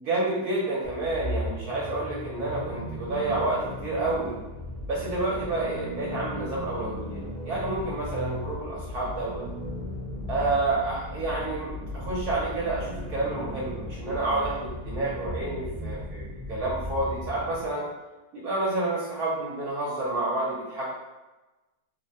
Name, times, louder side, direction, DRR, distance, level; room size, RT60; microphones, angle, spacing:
voice 1, 0.0-4.3 4.9-9.4 10.3-17.9 18.3-20.9, right 2 dB, 65° right, -6 dB, 1.1 m, -29 dB
sound 1, 0.8-17.7, left 1 dB, 35° right, 0.4 m, -36 dB
3.4 x 2.1 x 2.6 m, 1.1 s
omnidirectional pair, 1.8 m